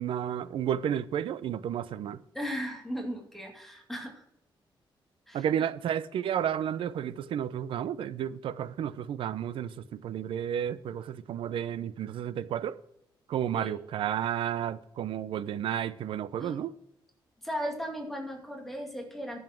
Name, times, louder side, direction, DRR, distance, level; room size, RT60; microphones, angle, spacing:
voice 1, 0.0-2.2 5.3-12.8 13.3-16.7, right 9 dB, 90° right, 0.7 m, -32 dB
voice 2, 2.3-4.2 5.3-5.5 13.5-13.7 16.4-16.6 17.4-19.4, equal, 5° left, 2.2 m, -36 dB
11.0 x 7.4 x 6.0 m
wide cardioid pair, 175°, 9 cm